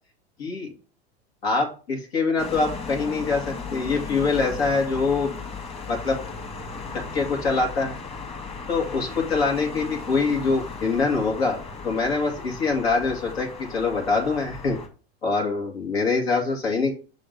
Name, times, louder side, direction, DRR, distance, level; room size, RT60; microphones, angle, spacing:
voice 1, 1.4-5.4 5.9-6.2 6.9-8.0 8.7-11.6 11.8-14.8 15.2-16.9, left 4 dB, 80° left, 0 dB, 2.4 m, -24 dB
sound 1, 2.4-14.9, left 4 dB, 20° left, 1.5 m, -36 dB
6.2 x 4.2 x 5.3 m, 0.36 s
hypercardioid pair, 100°, 31 cm